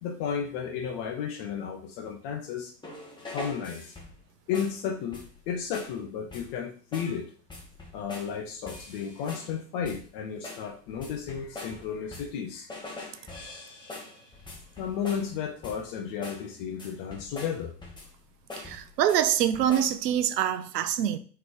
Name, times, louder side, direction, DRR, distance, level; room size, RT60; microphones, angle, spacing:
voice 1, 0.0-2.7 3.3-3.9 4.5-7.3 7.9-12.7 13.2-13.3 14.8-17.7, left 7 dB, 30° left, 0.4 m, -33 dB
sound 1, 2.8-4.2 4.5-4.8 5.1-5.4 5.7-6.0 6.3-6.6 6.9-7.2 7.5-8.4 8.7-9.5 9.8-10.1 10.4-12.4 12.7-15.3 15.6-15.9 16.2-16.5 16.8-18.2 18.5-19.2 19.5-20.0, left 2 dB, 10° left, 1.0 m, -43 dB
voice 2, 18.6-21.2, right 10 dB, 75° right, 0.6 m, -25 dB
3.7 x 3.2 x 3.6 m
hypercardioid pair, 95°, 49 cm